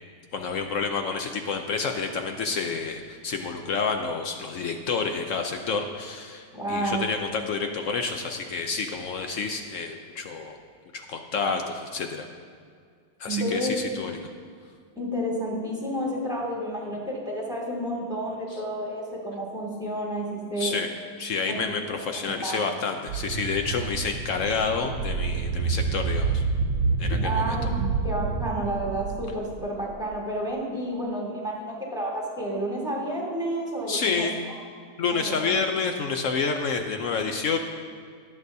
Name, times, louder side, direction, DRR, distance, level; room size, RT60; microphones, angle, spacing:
voice 1, 0.3-10.6 10.9-12.3 13.2-14.3 20.6-20.9 21.2-26.4 27.0-27.6 33.9-34.3 35.0-37.6, left 5 dB, 75° left, 5 dB, 0.7 m, -29 dB
voice 2, 6.5-7.1 13.3-13.7 15.0-20.8 21.5-21.6 22.4-22.6 27.2-27.6 28.0-31.6 31.9-34.3 35.0-35.6, right 1 dB, ahead, -4 dB, 2.0 m, -30 dB
sound 1, 23.1-30.2, right 4 dB, 85° right, 1.3 m, -28 dB
18.0 x 7.7 x 2.7 m, 2.1 s
omnidirectional pair, 2.0 m